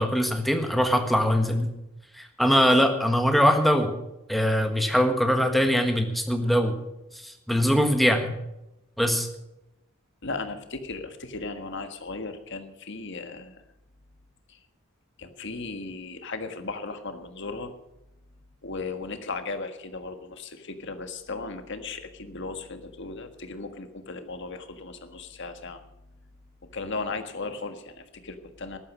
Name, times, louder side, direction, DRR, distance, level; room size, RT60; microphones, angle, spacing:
voice 1, 0.0-1.7 2.2-3.9 4.3-6.7 7.2-8.3 9.0-9.3, equal, ahead, 5 dB, 1.5 m, -22 dB
voice 2, 10.2-13.6 14.5-14.6 15.2-17.7 18.6-25.8 26.7-28.8, left 3 dB, 55° left, 7 dB, 1.6 m, -36 dB
14.0 x 11.5 x 6.2 m, 0.91 s
head